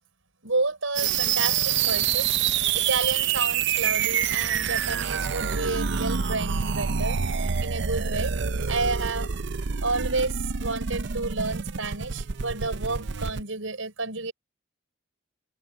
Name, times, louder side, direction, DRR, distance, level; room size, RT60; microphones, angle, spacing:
voice 1, 0.4-2.4 2.7-8.3 8.7-9.3 9.8-14.3, right 3 dB, 80° right, 5.3 m, -30 dB
sound 1, 1.0-13.4, right 7 dB, 60° right, 0.6 m, -27 dB
head